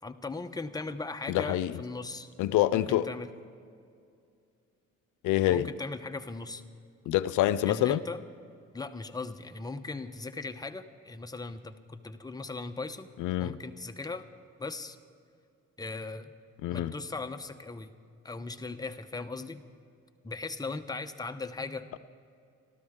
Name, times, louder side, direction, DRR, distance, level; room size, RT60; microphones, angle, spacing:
voice 1, 0.0-2.3 2.7-3.3 5.5-6.6 7.7-8.2 8.7-13.1 13.4-14.2 14.6-15.0 15.8-16.3 16.7-17.9 18.2-19.6 20.2-21.9, left 3 dB, 15° left, 8 dB, 0.9 m, -38 dB
voice 2, 1.3-1.7 2.4-3.1 5.2-5.7 7.1-8.0 13.2-13.6 16.6-16.9, left 14 dB, 85° left, 15 dB, 0.5 m, -26 dB
29.5 x 12.5 x 3.7 m, 2.4 s
cardioid pair, 90°, 30 cm